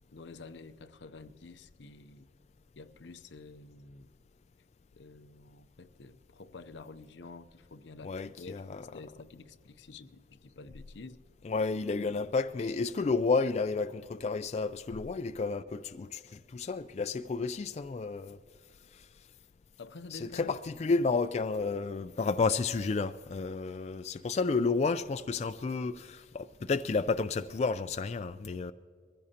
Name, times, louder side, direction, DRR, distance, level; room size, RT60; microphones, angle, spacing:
voice 1, 0.1-2.3 2.8-4.1 4.9-11.2 19.8-20.5, left 3 dB, 75° left, 0.6 m, -49 dB
voice 2, 8.0-8.8 11.4-18.4 18.9-19.1 20.1-28.7, left 4 dB, 35° left, 0.3 m, -31 dB
22.5 x 15.5 x 2.8 m
head